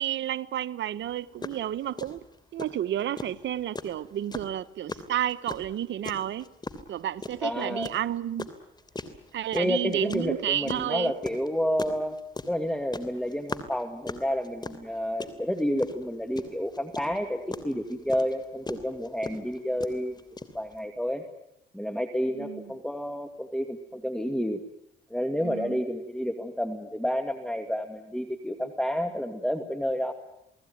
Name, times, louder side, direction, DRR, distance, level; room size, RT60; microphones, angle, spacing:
voice 1, 0.0-2.2 2.5-6.5 6.9-8.5 9.3-11.1 22.3-22.7 25.4-25.8, right 11 dB, 70° right, 1.1 m, -31 dB
sound 1, 1.1-1.2 1.4-1.6 2.0-20.8, left 3 dB, 20° left, 3.0 m, -38 dB
voice 2, 7.4-7.9 9.5-12.2 12.5-20.1 20.5-21.2 21.7-24.6 25.1-30.1, equal, 5° left, 2.1 m, -30 dB
29.0 x 19.0 x 9.4 m
cardioid pair, 90°, 20 cm